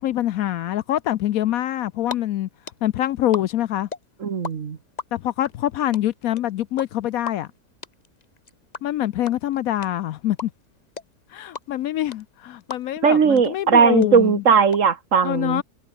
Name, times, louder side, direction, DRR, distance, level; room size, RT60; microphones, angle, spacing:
voice 1, 0.0-2.5 2.8-3.9 5.1-7.5 8.8-10.5 11.3-14.4 15.2-15.6, left 13 dB, 70° left, 1.0 m, -25 dB
sound 1, 1.9-2.2 2.4-4.5 4.8-13.1 13.4-13.5 13.7-14.8, left 4 dB, 30° left, 1.2 m, -35 dB
voice 2, 4.2-4.8 13.0-15.6, right 6 dB, 55° right, 1.6 m, -18 dB
omnidirectional pair, 1.7 m